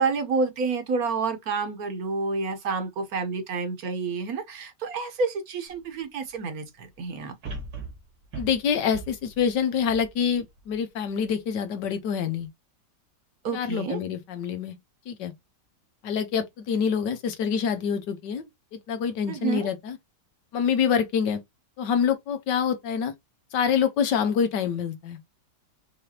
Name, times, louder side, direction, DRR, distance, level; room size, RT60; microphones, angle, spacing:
voice 1, 0.0-7.3 13.4-14.0 19.3-19.7, right 4 dB, 60° right, 1.4 m, -29 dB
sound 1, 5.7-5.8 7.4-10.8 11.3-11.4, right 3 dB, 80° right, 2.1 m, -40 dB
voice 2, 8.4-12.5 13.5-14.7 15.1-15.3 16.0-20.0 20.5-21.4 21.8-23.1 23.5-25.2, left 7 dB, 90° left, 1.6 m, -26 dB
4.8 x 3.3 x 2.8 m
omnidirectional pair, 1.8 m